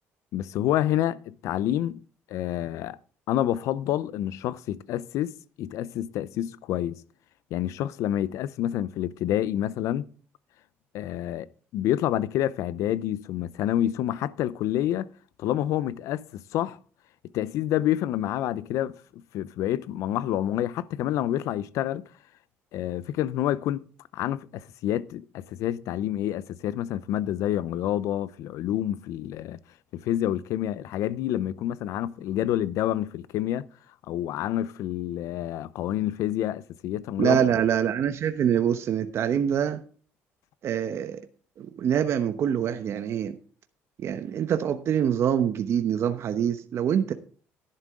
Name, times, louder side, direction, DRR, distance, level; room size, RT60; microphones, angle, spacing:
voice 1, 0.3-2.0 2.3-3.0 3.3-5.3 5.6-7.0 7.5-10.0 10.9-11.5 11.7-15.1 15.4-16.8 17.3-22.0 22.7-23.8 24.1-29.6 29.9-33.7 34.1-37.4, left 12 dB, 75° left, 0.6 m, -28 dB
voice 2, 37.2-39.8 40.6-41.2 41.6-43.4 44.0-47.1, right 9 dB, 55° right, 1.0 m, -25 dB
11.5 x 10.5 x 3.7 m
supercardioid pair, 90°, 5 cm